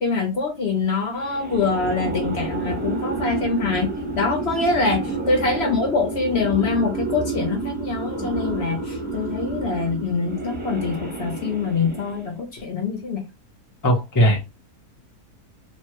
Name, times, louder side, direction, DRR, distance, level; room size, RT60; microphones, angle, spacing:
voice 1, 0.0-13.2, left 4 dB, 50° left, 0.8 m, -24 dB
sound 1, 1.2-12.3, right 3 dB, 5° right, 0.9 m, -29 dB
voice 2, 13.8-14.4, equal, 25° left, 0.4 m, -18 dB
3.3 x 2.2 x 2.9 m
omnidirectional pair, 1.7 m